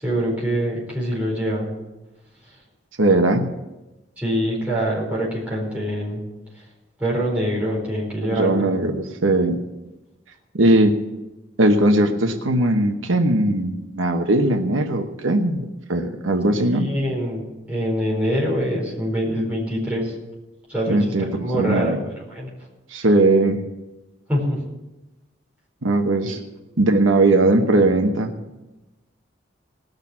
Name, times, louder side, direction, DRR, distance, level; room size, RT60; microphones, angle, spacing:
voice 1, 0.0-1.7 4.2-6.2 7.0-8.7 16.7-20.1 20.7-21.9 22.3-22.5 24.3-24.6 26.2-26.4, equal, 5° right, -5 dB, 4.6 m, -24 dB
voice 2, 3.0-3.5 8.2-9.6 10.5-11.0 11.6-16.9 20.9-22.0 22.9-23.6 25.8-26.4 26.8-28.3, right 2 dB, 85° right, 5 dB, 1.1 m, -19 dB
19.0 x 6.6 x 7.3 m, 1.0 s
head